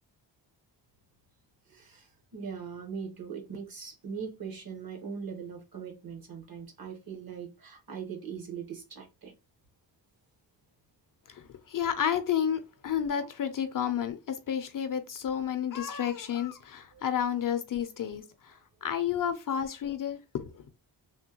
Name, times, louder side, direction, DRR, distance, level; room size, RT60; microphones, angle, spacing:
voice 1, 1.7-9.3 16.9-17.0, right 6 dB, 55° right, 1.1 m, -40 dB
voice 2, 11.3-20.6, left 9 dB, 50° left, 0.5 m, -31 dB
3.5 x 2.2 x 2.8 m
wide cardioid pair, 120°, 43 cm